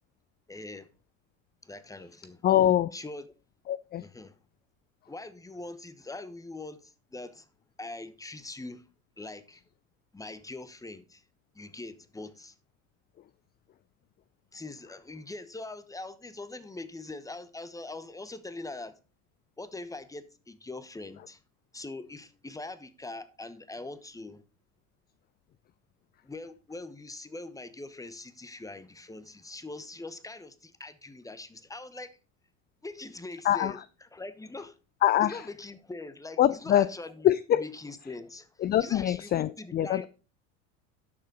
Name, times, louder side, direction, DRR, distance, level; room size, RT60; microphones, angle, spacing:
voice 1, 0.5-0.9 1.6-2.4 2.9-3.3 4.0-4.3 5.1-7.5 7.8-8.8 9.2-9.6 10.1-11.2 11.5-12.5 14.5-18.9 19.6-21.4 21.7-24.4 26.2-32.1 32.8-34.8 35.2-37.3 37.5-40.1, left 2 dB, 10° left, 1.1 m, -42 dB
voice 2, 2.4-2.9 3.7-4.0 33.4-33.7 35.0-35.4 36.4-36.9 37.2-37.6 38.6-40.1, left 11 dB, 25° left, 0.4 m, -24 dB
11.5 x 6.6 x 4.0 m
hypercardioid pair, 85°, 41 cm